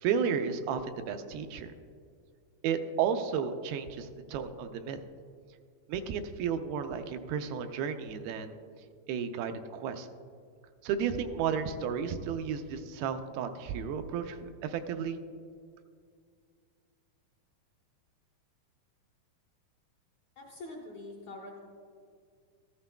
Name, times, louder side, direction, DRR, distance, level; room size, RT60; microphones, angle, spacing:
voice 1, 0.0-1.7 2.6-5.0 5.9-8.5 9.1-10.1 10.8-15.2, right 7 dB, 85° right, 7 dB, 2.4 m, -33 dB
voice 2, 20.4-21.7, left 2 dB, 70° left, -2 dB, 1.7 m, -44 dB
13.5 x 13.0 x 2.2 m, 2.2 s
omnidirectional pair, 4.4 m